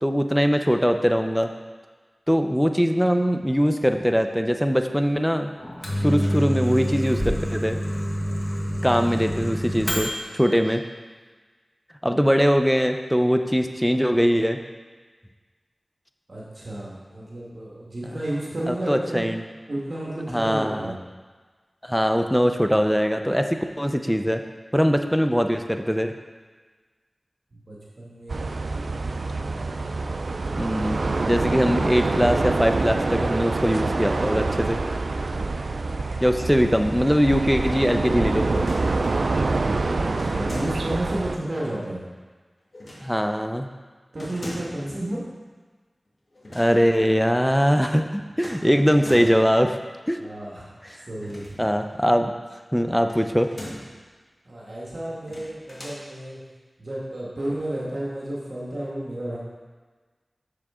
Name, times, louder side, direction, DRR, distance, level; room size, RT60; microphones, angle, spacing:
voice 1, 0.0-1.5 2.3-5.5 6.0-7.8 8.8-10.8 12.0-14.6 18.7-19.4 20.3-20.9 21.8-24.4 24.7-26.2 30.6-31.0 31.3-34.8 36.2-38.5 43.0-43.7 46.5-49.8 50.1-50.2 50.8-51.1 51.6-52.3 52.7-53.5, equal, ahead, 6 dB, 0.5 m, -21 dB
Microwave oven, 5.6-10.4, equal, 30° left, 1.4 m, -27 dB
voice 2, 16.3-19.3 19.7-21.0 27.6-28.6 29.3-30.0 39.9-42.0 44.1-45.2 50.2-50.7 51.1-51.6 54.4-56.4 56.8-59.4, right 1 dB, 60° right, -6 dB, 1.6 m, -32 dB
sound 1, 28.3-41.4, right 3 dB, 80° right, 0.3 m, -26 dB
sound 2, 38.5-39.2 40.2-41.1 42.7-43.2 44.2-44.9 46.3-46.7 47.0-47.1 48.4-49.5 51.1-52.0 53.1-54.0 55.2-56.0, left 1 dB, 60° left, 1.8 m, -40 dB
7.6 x 6.5 x 3.7 m, 1.4 s
wide cardioid pair, 55°, 0 cm